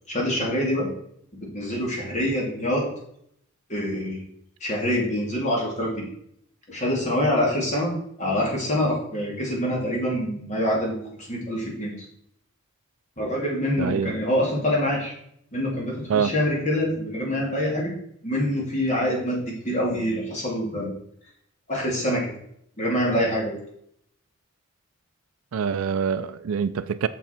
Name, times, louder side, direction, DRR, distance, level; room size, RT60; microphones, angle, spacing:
voice 1, 0.1-0.9 1.4-3.0 3.7-4.3 4.6-6.1 6.7-11.0 11.3-12.0 13.2-15.1 15.5-17.9 18.2-20.9 21.7-22.3 22.8-23.6, equal, 35° left, -2 dB, 2.2 m, -25 dB
voice 2, 13.8-14.1 16.1-16.3 25.5-27.1, right 6 dB, 70° right, 11 dB, 0.4 m, -25 dB
6.8 x 5.9 x 4.2 m, 0.71 s
head